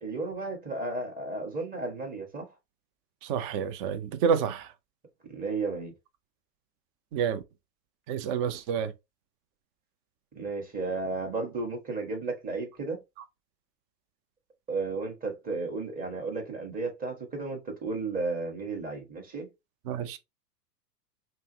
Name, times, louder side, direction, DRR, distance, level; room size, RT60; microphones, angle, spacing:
voice 1, 0.0-2.4 5.3-5.9 10.3-13.0 14.7-19.5, right 3 dB, 15° right, 1.4 m, -33 dB
voice 2, 3.2-4.7 7.1-7.4 8.1-8.9 19.9-20.2, right 7 dB, 35° right, 0.5 m, -28 dB
5.3 x 2.0 x 2.7 m
hypercardioid pair, 110°, 49 cm